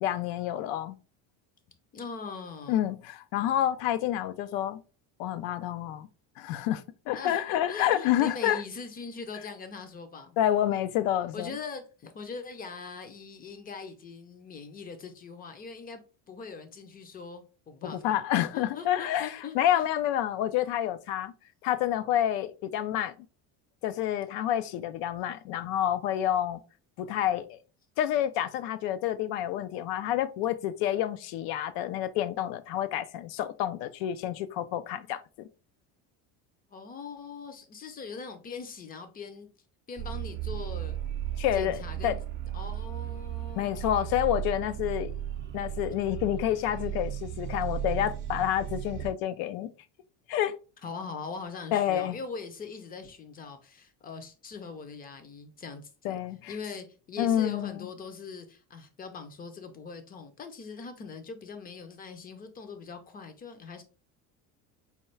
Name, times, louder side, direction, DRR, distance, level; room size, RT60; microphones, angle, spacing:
voice 1, 0.0-0.9 2.7-4.8 5.2-6.1 6.4-8.6 10.4-11.5 17.8-21.3 21.6-23.1 23.8-26.6 27.0-27.6 28.0-35.5 41.4-42.2 43.6-45.1 45.5-49.7 50.3-50.5 51.7-52.2 56.0-56.5 57.2-57.8, left 11 dB, 75° left, 0.5 m, -28 dB
voice 2, 1.9-2.9 7.1-7.4 7.7-10.4 11.3-16.0 16.3-18.2 18.5-19.9 36.7-39.5 39.9-41.0 41.5-42.2 42.5-43.8 50.8-56.2 56.5-63.8, left 5 dB, 25° left, 0.5 m, -41 dB
sound 1, 40.0-49.1, right 11 dB, 30° right, 0.6 m, -35 dB
4.2 x 2.3 x 3.2 m
cardioid pair, 135°, 38 cm